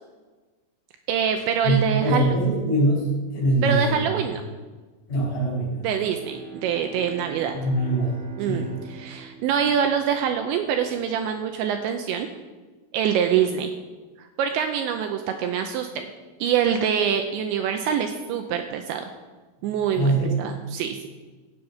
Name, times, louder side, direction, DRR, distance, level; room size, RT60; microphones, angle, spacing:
voice 1, 1.1-2.4 3.6-4.4 5.8-7.5 8.4-12.3 12.9-13.7 14.2-16.1 16.4-19.1 19.6-20.1 20.4-21.1, right 8 dB, 85° right, 6 dB, 2.6 m, -25 dB
voice 2, 1.6-4.1 5.1-5.8 7.5-8.1 8.4-8.7 19.9-20.3, right 1 dB, 45° left, -9 dB, 6.3 m, -23 dB
Bowed string instrument, 5.8-10.6, right 5 dB, 45° right, 1.7 m, -43 dB
16.5 x 7.3 x 5.8 m, 1.3 s
omnidirectional pair, 5.9 m